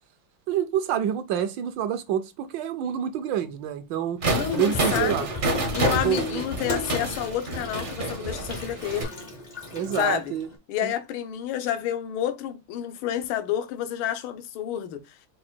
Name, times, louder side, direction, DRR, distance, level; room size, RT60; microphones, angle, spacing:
voice 1, 0.5-4.2 4.6-5.3 6.0-6.4 9.7-10.5 10.8-10.9, right 9 dB, 75° right, 1.2 m, -27 dB
sound 1, 4.2-9.0, right 1 dB, 50° right, 0.6 m, -28 dB
voice 2, 4.3-5.3 5.7-9.1 10.0-10.3 10.7-15.2, left 11 dB, 85° left, 1.5 m, -29 dB
Water tap faucet / Sink (filling or washing), 4.4-10.5, left 2 dB, 65° left, 0.4 m, -36 dB
4.9 x 2.1 x 4.3 m
omnidirectional pair, 2.2 m